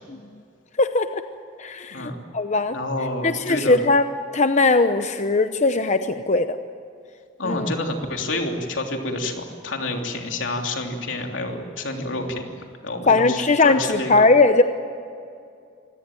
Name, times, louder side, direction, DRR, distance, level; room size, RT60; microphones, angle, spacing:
voice 1, 0.8-1.2 1.6-2.8 3.2-4.1 4.3-6.5 7.4-7.7 13.1-14.6, left 3 dB, 40° left, 9 dB, 0.8 m, -19 dB
voice 2, 2.7-3.8 7.4-12.4 12.8-14.2, left 2 dB, 85° left, 3 dB, 3.2 m, -28 dB
26.0 x 17.5 x 9.1 m, 2.4 s
head